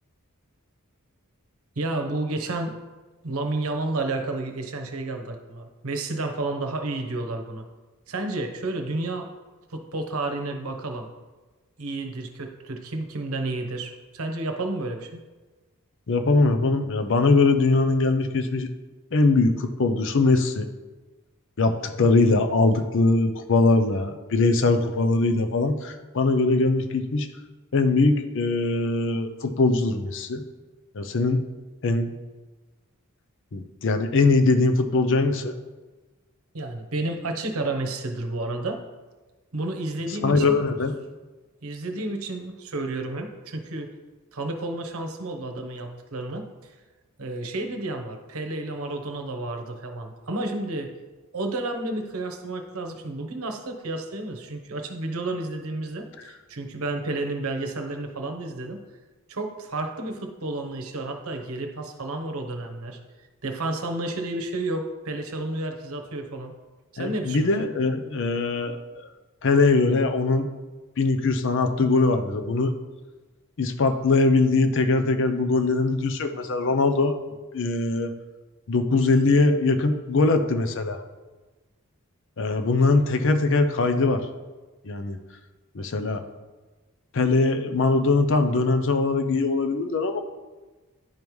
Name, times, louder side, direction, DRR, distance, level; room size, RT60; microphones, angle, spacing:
voice 1, 1.8-2.8 3.2-7.6 8.1-9.3 9.7-11.1 11.8-15.2 36.5-38.8 39.5-40.6 41.6-43.9 44.3-46.7 47.2-50.9 51.3-58.8 59.3-63.0 63.4-66.5 66.9-67.5, right 2 dB, 75° right, 5 dB, 0.9 m, -31 dB
voice 2, 16.1-18.7 19.1-20.7 21.6-27.3 27.7-30.4 30.9-31.4 31.8-32.1 33.5-35.5 40.2-40.9 67.0-69.1 69.4-70.5 71.0-72.7 73.6-77.2 77.5-78.1 78.7-81.0 82.4-84.3 84.8-85.2 85.7-86.2 87.1-90.2, left 3 dB, 60° left, 8 dB, 0.6 m, -21 dB
10.5 x 5.2 x 3.1 m, 1.2 s
head